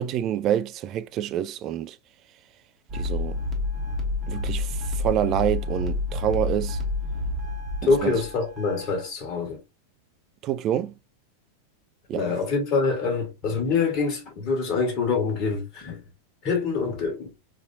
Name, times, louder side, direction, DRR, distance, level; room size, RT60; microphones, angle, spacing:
voice 1, 0.0-2.0 2.9-3.4 4.3-6.8 7.8-8.2 10.4-10.9 12.1-12.4, right 11 dB, 35° right, 0.3 m, -27 dB
sound 1, 2.9-9.1, left 3 dB, 20° right, 1.0 m, -29 dB
voice 2, 7.8-9.6 12.1-16.0 16.4-17.3, left 4 dB, 40° left, 1.4 m, -25 dB
4.1 x 2.5 x 2.7 m
figure-of-eight pair, 90°, 0 cm